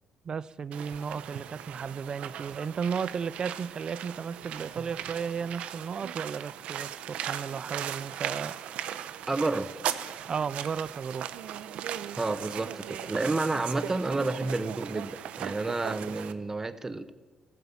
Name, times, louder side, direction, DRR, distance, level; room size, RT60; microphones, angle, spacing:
voice 1, 0.2-8.6 10.3-11.3, right 6 dB, 40° right, 0.4 m, -34 dB
sound 1, 0.7-16.3, right 10 dB, 75° right, 0.8 m, -38 dB
voice 2, 9.3-9.7 12.2-17.1, right 3 dB, 20° right, 0.9 m, -30 dB
15.0 x 12.5 x 7.2 m
cardioid pair, 105°, 2 cm